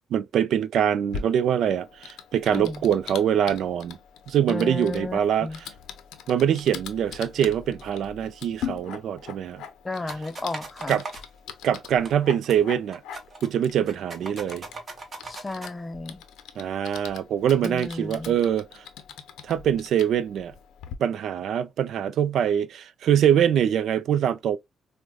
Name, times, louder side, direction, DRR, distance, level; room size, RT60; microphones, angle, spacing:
voice 1, 0.1-4.0 4.3-5.5 6.3-9.6 10.9-11.0 11.6-13.0 13.4-14.7 16.6-18.8 19.4-20.5 21.0-24.6, right 9 dB, 70° right, 0.4 m, -24 dB
Typing, 1.1-20.9, left 8 dB, 85° left, 0.5 m, -42 dB
voice 2, 2.5-2.9 4.5-5.6 9.8-11.0 15.2-16.2 17.6-18.4, left 2 dB, 20° left, 0.4 m, -33 dB
sound 1, 10.1-11.2 12.1-12.2 12.4-12.6 12.9-13.5 13.9-15.7, right 3 dB, 35° right, 1.0 m, -39 dB
4.7 x 2.1 x 2.2 m
cardioid pair, 90°, 0 cm